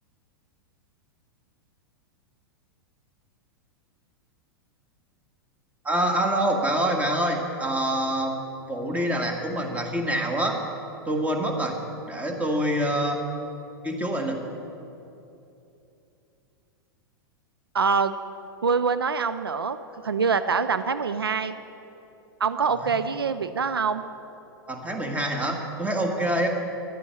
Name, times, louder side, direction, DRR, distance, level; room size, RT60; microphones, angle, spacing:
voice 1, 5.8-8.4 8.7-10.6 11.0-11.7 12.1-13.2 13.8-14.4 22.8-22.9 24.7-26.5, right 1 dB, 10° right, 2 dB, 1.7 m, -26 dB
voice 2, 17.7-18.1 18.6-19.8 20.0-21.5 22.4-24.0, right 5 dB, 80° right, 12 dB, 0.5 m, -24 dB
11.0 x 9.6 x 7.7 m, 2.8 s
figure-of-eight pair, 100°, 12 cm